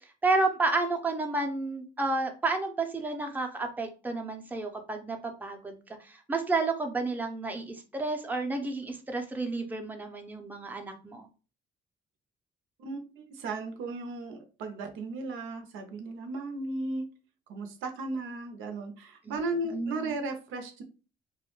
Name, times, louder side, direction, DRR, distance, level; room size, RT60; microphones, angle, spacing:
voice 1, 0.2-11.3 19.2-19.4 19.7-20.1, right 3 dB, 10° right, 4 dB, 0.5 m, -31 dB
voice 2, 12.8-17.0 17.5-20.8, right 2 dB, 85° right, 5 dB, 0.5 m, -35 dB
2.2 x 2.1 x 2.9 m, 0.35 s
cardioid pair, 90°, 20 cm